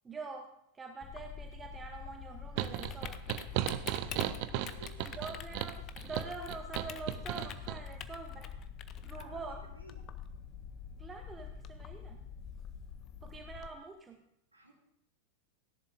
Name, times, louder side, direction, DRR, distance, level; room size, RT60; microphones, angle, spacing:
voice 1, 0.0-0.5 0.7-3.2 5.0-8.5 9.0-9.6 11.0-12.2 13.2-14.2, right 3 dB, 15° right, 4 dB, 0.8 m, -45 dB
Typing, 1.0-13.7, left 7 dB, 35° left, 0.7 m, -45 dB
sound 1, 2.6-7.8, right 13 dB, 45° right, 0.5 m, -36 dB
voice 2, 4.8-5.2 9.1-10.0 14.5-14.7, equal, 85° right, 0 dB, 2.3 m, -55 dB
16.5 x 10.5 x 2.6 m, 0.77 s
figure-of-eight pair, 90°, 0 cm